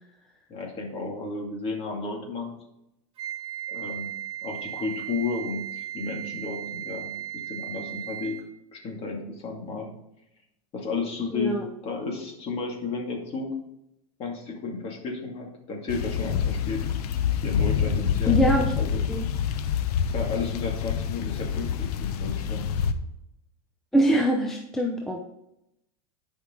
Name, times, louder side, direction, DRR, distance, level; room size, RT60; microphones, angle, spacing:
voice 1, 0.5-2.5 3.7-4.1 4.4-7.1 7.5-8.4 8.7-9.9 10.7-13.5 14.2-16.9 17.3-18.4 18.8-19.0 20.1-22.7, left 4 dB, 30° left, 0 dB, 2.4 m, -33 dB
Wind instrument woodwind instrument, 3.2-8.5, right 12 dB, 30° right, 1.8 m, -36 dB
voice 2, 11.3-11.7 18.3-18.7 19.1-19.2 23.9-25.2, right 1 dB, ahead, 0 dB, 0.6 m, -23 dB
sound 1, 15.9-22.9, left 8 dB, 80° left, 0.9 m, -27 dB
11.5 x 5.4 x 3.8 m, 0.83 s
supercardioid pair, 145°, 19 cm